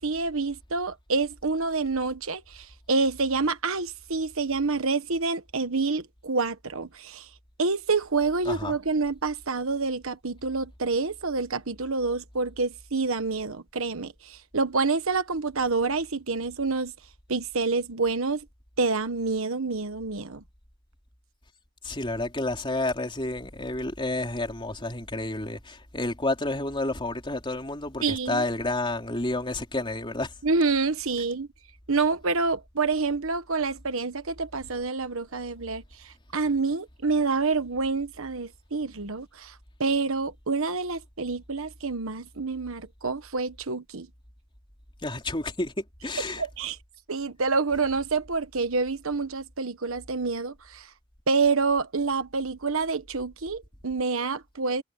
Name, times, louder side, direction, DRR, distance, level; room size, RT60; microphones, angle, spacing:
voice 1, 0.0-7.3 7.6-16.9 17.3-18.4 18.8-20.4 28.0-28.4 30.4-31.5 31.9-39.5 39.8-44.1 46.4-46.8 47.1-50.9 51.3-54.8, right 4 dB, 70° right, 1.3 m, -27 dB
voice 2, 8.5-8.8 21.8-30.3 45.0-46.4, left 2 dB, 25° left, 3.9 m, -30 dB
head